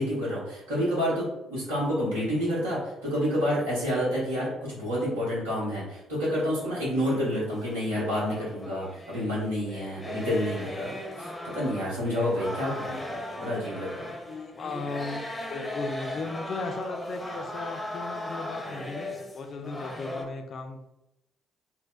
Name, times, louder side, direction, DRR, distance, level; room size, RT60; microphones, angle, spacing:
voice 1, 0.0-14.1, equal, 80° right, -7 dB, 1.0 m, -29 dB
sound 1, 7.4-9.3 9.6-20.3, left 1 dB, 10° left, 0.6 m, -38 dB
voice 2, 14.3-20.9, left 3 dB, 50° left, 3 dB, 0.3 m, -36 dB
3.9 x 2.1 x 2.3 m, 0.89 s
figure-of-eight pair, 45°, 0 cm